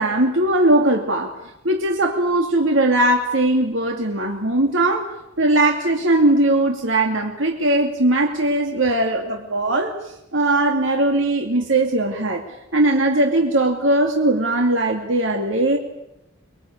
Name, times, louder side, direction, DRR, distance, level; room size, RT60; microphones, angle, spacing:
voice 1, 0.0-1.4 1.6-5.1 5.4-12.4 12.7-15.8, right 1 dB, 80° right, 2 dB, 2.6 m, -19 dB
24.0 x 23.0 x 8.7 m, 0.85 s
head